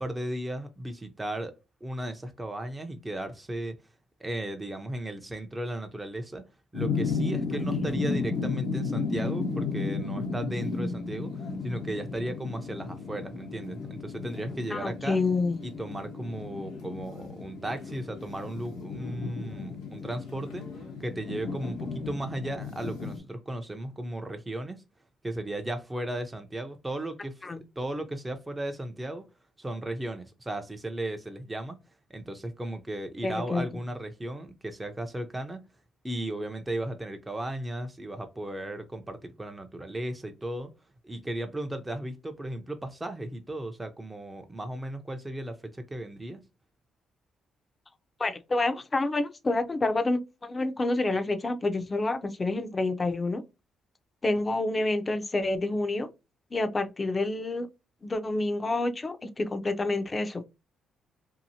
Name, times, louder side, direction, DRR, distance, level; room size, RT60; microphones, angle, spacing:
voice 1, 0.0-1.5 1.8-3.8 4.2-6.4 6.7-15.2 15.6-20.7 21.0-24.8 25.2-27.4 27.8-29.3 29.6-31.8 32.1-35.6 36.0-40.7 41.0-46.4, right 1 dB, 15° right, 0.6 m, -35 dB
sound 1, 6.7-23.2, left 4 dB, 90° left, 1.0 m, -34 dB
voice 2, 14.7-15.6 27.4-27.6 33.2-33.6 48.2-53.4 54.2-56.1 56.5-57.7 58.0-60.4, left 2 dB, 30° left, 0.6 m, -28 dB
2.8 x 2.6 x 2.6 m
cardioid pair, 75°, 0 cm